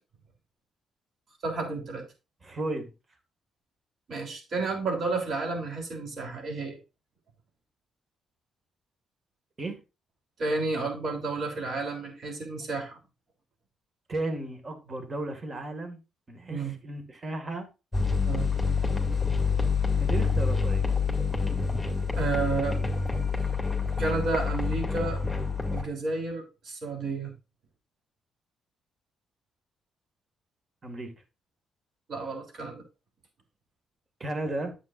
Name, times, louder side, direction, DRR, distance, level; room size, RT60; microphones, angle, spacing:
voice 1, 1.4-2.0 4.1-6.8 10.4-13.0 16.5-16.8 18.2-18.5 22.2-22.8 24.0-25.2 25.7-27.3 32.1-32.8, right 3 dB, 55° right, 3.4 m, -31 dB
voice 2, 2.4-2.9 9.6-9.8 14.1-16.0 16.3-17.7 20.0-20.9 30.8-31.1 34.2-34.8, right 2 dB, 40° right, 2.1 m, -34 dB
sound 1, 17.9-25.8, left 5 dB, ahead, 2.2 m, -27 dB
9.7 x 7.6 x 2.6 m
supercardioid pair, 55°, 0 cm